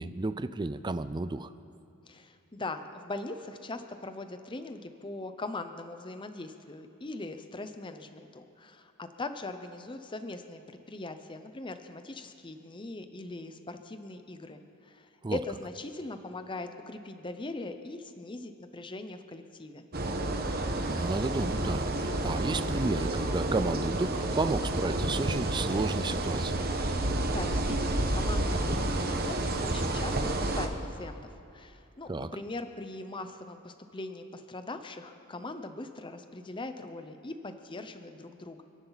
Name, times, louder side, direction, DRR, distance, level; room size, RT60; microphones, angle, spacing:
voice 1, 0.0-1.5 15.2-15.4 20.9-26.6 32.1-32.3, right 2 dB, 20° right, 13 dB, 0.4 m, -32 dB
voice 2, 2.1-19.8 26.9-38.6, left 2 dB, 25° left, 8 dB, 0.7 m, -41 dB
sound 1, 19.9-30.7, right 1 dB, 45° right, 1.2 m, -30 dB
30.0 x 11.0 x 4.1 m, 2.6 s
head